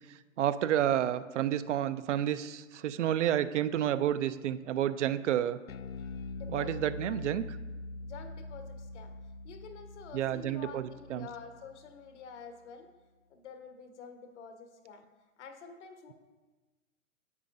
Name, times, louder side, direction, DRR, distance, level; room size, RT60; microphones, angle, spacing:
voice 1, 0.4-5.6 6.5-7.5 10.1-11.3, right 11 dB, 60° right, 13 dB, 0.5 m, -30 dB
Bass guitar, 5.7-12.1, left 2 dB, 80° left, 0.6 m, -43 dB
voice 2, 6.3-7.2 8.0-9.1 9.4-12.9 13.3-15.0 15.4-16.1, left 6 dB, 55° left, 6 dB, 1.2 m, -48 dB
9.5 x 7.3 x 2.6 m, 1.2 s
hypercardioid pair, 130°, 40 cm